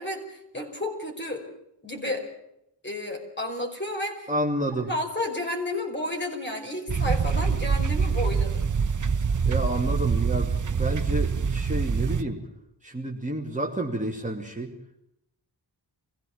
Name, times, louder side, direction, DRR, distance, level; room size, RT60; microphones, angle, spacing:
voice 1, 0.0-1.5 1.8-2.2 2.8-4.3 4.9-8.7, left 1 dB, 25° left, 2 dB, 5.2 m, -31 dB
voice 2, 4.3-4.9 9.5-12.4 12.8-14.7, right 1 dB, 15° right, 0 dB, 2.6 m, -30 dB
sound 1, 6.9-12.2, right 5 dB, 45° right, 1.0 m, -25 dB
23.5 x 16.0 x 7.2 m, 0.82 s
wide cardioid pair, 75°, 43 cm